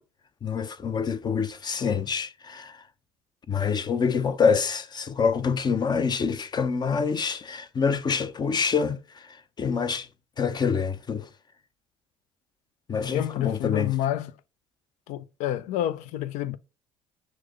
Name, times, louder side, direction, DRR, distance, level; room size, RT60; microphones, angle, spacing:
voice 1, 0.4-2.8 3.5-10.1 10.4-11.3 12.9-13.9, left 6 dB, 35° left, 0.6 m, -26 dB
voice 2, 13.1-14.3 15.1-16.6, left 12 dB, 70° left, 0.4 m, -29 dB
6.3 x 2.2 x 3.8 m
supercardioid pair, 75°, 13 cm